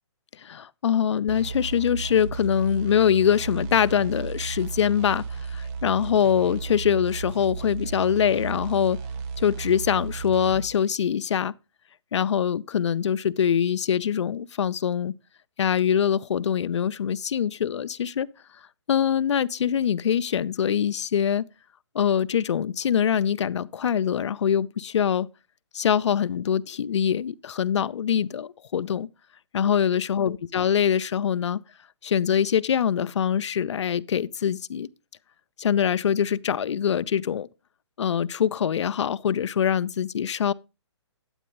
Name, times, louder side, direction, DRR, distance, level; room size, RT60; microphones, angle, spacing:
voice 1, 0.4-9.0 9.4-11.5 12.1-15.1 15.6-18.3 18.9-21.4 21.9-25.3 25.7-29.1 29.5-31.6 32.0-34.9 35.6-37.5 38.0-40.5, left 8 dB, 75° left, 0.5 m, -24 dB
sound 1, 1.3-10.7, right 5 dB, 15° right, 0.5 m, -34 dB
9.3 x 8.9 x 3.0 m
hypercardioid pair, 155°, 15 cm